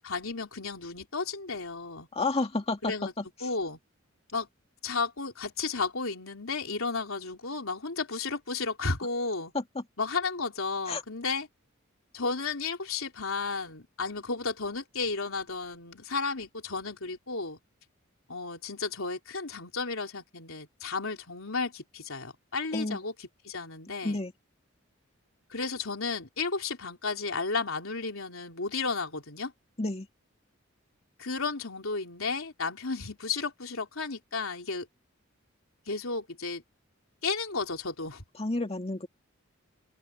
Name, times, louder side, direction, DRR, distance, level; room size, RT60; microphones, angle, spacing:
voice 1, 0.0-2.1 2.8-3.1 3.4-3.8 4.3-4.5 4.8-9.5 10.0-11.5 12.1-17.6 18.3-24.2 25.5-29.5 31.2-34.9 35.9-36.6 37.2-38.2, left 4 dB, 80° left, 3.5 m, -33 dB
voice 2, 2.1-3.5 9.5-9.8 10.9-11.0 22.7-23.0 24.0-24.3 29.8-30.1 38.4-39.1, left 2 dB, 30° left, 2.1 m, -31 dB
head